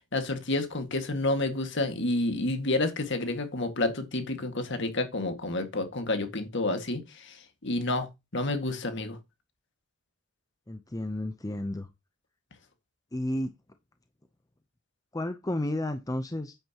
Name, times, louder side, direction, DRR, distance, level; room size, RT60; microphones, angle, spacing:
voice 1, 0.1-8.1 8.3-9.2, left 2 dB, 55° left, 1.9 m, -29 dB
voice 2, 10.7-11.9 13.1-13.5 15.1-16.6, left 1 dB, 15° left, 0.6 m, -32 dB
9.1 x 9.0 x 2.9 m
head